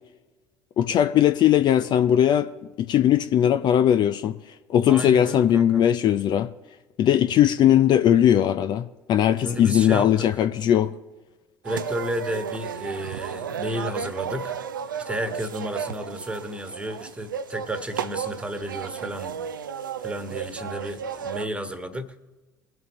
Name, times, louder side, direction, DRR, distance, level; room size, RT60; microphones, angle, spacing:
voice 1, 0.8-2.5 2.8-4.4 4.7-6.5 7.0-10.9, left 10 dB, 45° left, 0.5 m, -19 dB
voice 2, 4.9-5.9 9.4-10.4 11.6-14.5 15.0-19.4 20.0-22.1, equal, 10° right, 1.5 m, -32 dB
sound 1, 11.6-21.5, right 7 dB, 80° right, 0.5 m, -33 dB
22.0 x 7.8 x 3.1 m
figure-of-eight pair, 60°, 11 cm